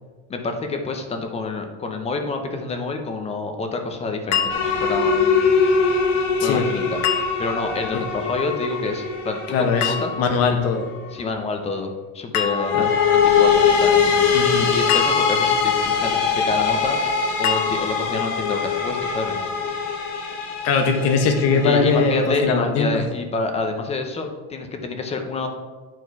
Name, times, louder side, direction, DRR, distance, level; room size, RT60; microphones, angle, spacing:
voice 1, 0.3-5.5 6.4-7.0 7.4-10.1 11.1-14.3 14.7-17.0 17.4-19.5 21.6-25.5, left 3 dB, 20° left, 5 dB, 0.7 m, -28 dB
sound 1, 4.3-5.0 7.0-7.8 9.8-10.5 12.3-13.0 14.9-15.8 17.4-18.2, left 7 dB, 80° left, 1.0 m, -26 dB
sound 2, 4.5-11.0 12.5-22.4, left 6 dB, 65° left, 1.4 m, -22 dB
voice 2, 9.5-10.9 12.7-12.9 14.3-14.7 20.6-23.0, left 4 dB, 50° left, 5 dB, 1.1 m, -20 dB
10.0 x 4.6 x 4.6 m, 1.3 s
cardioid pair, 170°, 32 cm